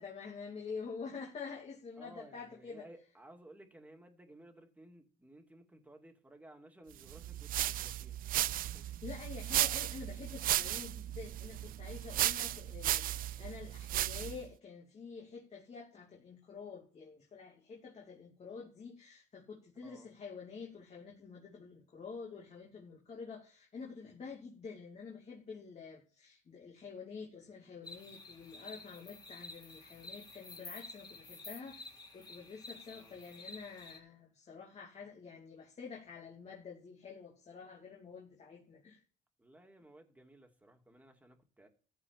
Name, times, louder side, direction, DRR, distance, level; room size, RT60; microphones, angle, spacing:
voice 1, 0.0-2.9 9.0-39.0, left 5 dB, 40° left, 2.7 m, -48 dB
voice 2, 2.0-8.9 19.8-20.1 32.9-33.2 39.4-41.7, right 1 dB, 10° right, 2.6 m, -57 dB
sound 1, 7.1-14.5, right 13 dB, 55° right, 0.4 m, -35 dB
sound 2, 27.8-34.0, left 2 dB, 25° left, 3.3 m, -51 dB
14.0 x 5.0 x 7.1 m
cardioid pair, 110°, 17 cm